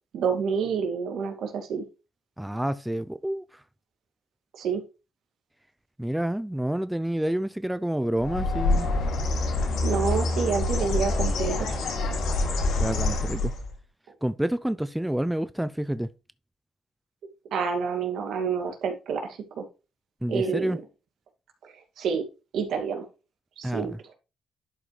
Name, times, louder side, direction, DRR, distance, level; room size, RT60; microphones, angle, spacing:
voice 1, 0.1-1.8 4.6-4.8 9.8-11.8 17.5-19.6 20.3-20.7 21.6-22.2 22.5-23.1 23.6-23.9, right 6 dB, 80° right, 2.1 m, -28 dB
voice 2, 2.4-3.6 6.0-8.9 12.8-13.5 14.2-16.1 20.2-20.8 23.6-24.0, right 1 dB, 5° right, 0.4 m, -28 dB
Bird, 8.2-13.7, left 2 dB, 85° left, 2.5 m, -26 dB
11.0 x 5.0 x 3.2 m
cardioid pair, 105°, 0 cm